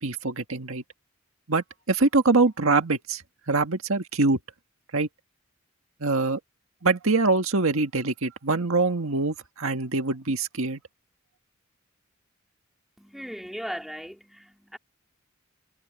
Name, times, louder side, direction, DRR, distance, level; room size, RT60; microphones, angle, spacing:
voice 1, 0.0-0.8 1.5-3.2 3.5-4.4 4.9-5.1 6.0-6.4 6.8-10.8, right 3 dB, 75° right, 1.7 m, -24 dB
voice 2, 13.0-14.8, equal, ahead, 3.2 m, -38 dB
head